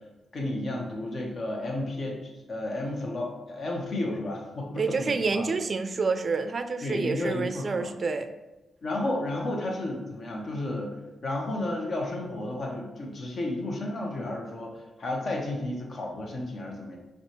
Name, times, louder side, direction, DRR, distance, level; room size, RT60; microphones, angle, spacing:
voice 1, 0.3-5.5 6.8-7.9 8.8-10.9 11.2-17.0, left 1 dB, 60° left, 0 dB, 0.9 m, -32 dB
voice 2, 4.8-8.3, right 4 dB, 50° right, 8 dB, 0.3 m, -28 dB
5.3 x 2.4 x 2.9 m, 1.1 s
supercardioid pair, 55°, 0 cm